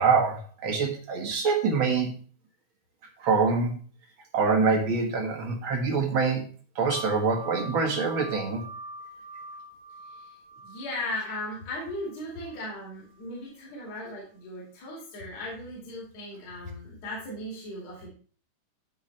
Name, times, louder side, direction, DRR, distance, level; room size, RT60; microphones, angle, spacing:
voice 1, 0.0-2.1 3.2-3.8 4.3-6.5 6.8-8.6, right 4 dB, 45° right, 1 dB, 2.0 m, -25 dB
Wind chime, 6.9-12.7 13.1-13.2, equal, 90° left, 6.0 m, -43 dB
voice 2, 10.6-18.1, left 1 dB, 55° left, -5 dB, 3.7 m, -37 dB
13.0 x 4.6 x 3.3 m, 0.41 s
omnidirectional pair, 3.7 m